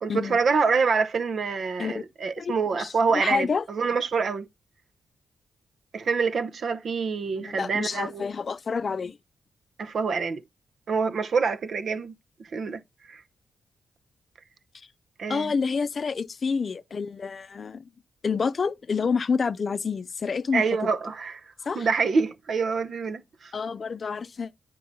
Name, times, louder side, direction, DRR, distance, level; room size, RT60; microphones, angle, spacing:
voice 1, 0.0-4.4 5.9-8.2 9.8-10.4 10.9-12.1 12.5-12.8 13.1-13.2 15.2-15.5 20.5-21.4 21.7-23.5, right 5 dB, 60° right, 0.7 m, -26 dB
voice 2, 2.4-3.6 7.4-9.2 14.7-14.9 15.3-17.9 18.2-20.6 21.7-21.9 23.5-24.5, left 5 dB, 50° left, 0.5 m, -28 dB
9.3 x 4.5 x 4.1 m
cardioid pair, 85°, 0 cm